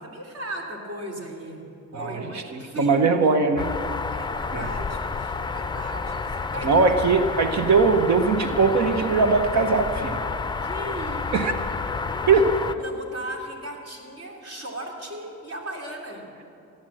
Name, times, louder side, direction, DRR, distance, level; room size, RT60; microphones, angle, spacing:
voice 1, 0.0-3.4 4.1-6.7 10.6-11.5 11.8-12.3 12.6-16.3, right 1 dB, 50° right, -1 dB, 3.2 m, -37 dB
voice 2, 2.5-3.7 4.5-4.7 6.6-10.2 11.3-11.5 12.3-12.5, right 4 dB, 65° right, 7 dB, 1.0 m, -20 dB
sound 1, 3.6-12.8, left 4 dB, 15° left, 0.5 m, -30 dB
15.0 x 10.5 x 7.5 m, 2.6 s
cardioid pair, 90°, 30 cm